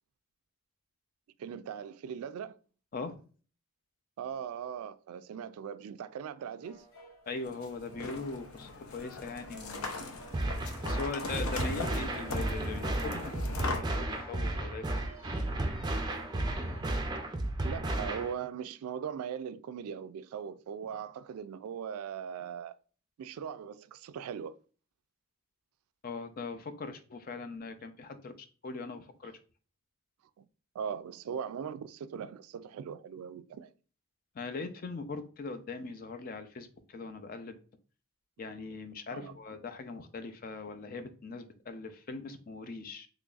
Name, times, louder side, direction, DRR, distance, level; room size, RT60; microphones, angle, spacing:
voice 1, 1.4-2.6 4.2-6.8 17.6-22.7 23.2-24.5 30.4-30.5 30.7-33.7 39.1-39.4, right 7 dB, 90° right, 0.3 m, -40 dB
sound 1, 6.6-17.3, right 2 dB, 65° left, 1.2 m, -56 dB
sound 2, 7.3-13.8, left 3 dB, 80° left, 0.6 m, -40 dB
voice 2, 7.3-10.1 10.9-13.2 13.6-15.0 26.0-28.3 28.6-29.3 34.3-37.6 38.4-43.1, left 3 dB, 40° left, 0.4 m, -40 dB
sound 3, 10.3-18.3, right 1 dB, 20° right, 0.4 m, -33 dB
3.8 x 3.1 x 2.4 m
head